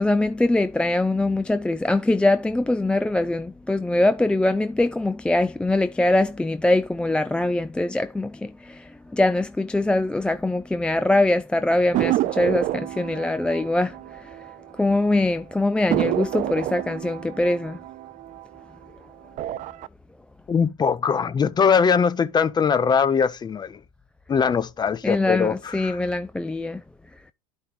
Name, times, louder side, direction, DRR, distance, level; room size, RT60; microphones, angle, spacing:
voice 1, 0.0-14.3 14.8-17.8 25.0-26.8, left 2 dB, 5° left, 0.4 m, -23 dB
sound 1, 11.9-15.0 15.3-15.4 15.9-18.8 19.3-19.9, right 15 dB, 45° right, 0.5 m, -28 dB
voice 2, 20.5-23.8 24.3-26.0, left 6 dB, 25° left, 0.8 m, -21 dB
12.5 x 5.3 x 2.5 m
supercardioid pair, 100°, 17 cm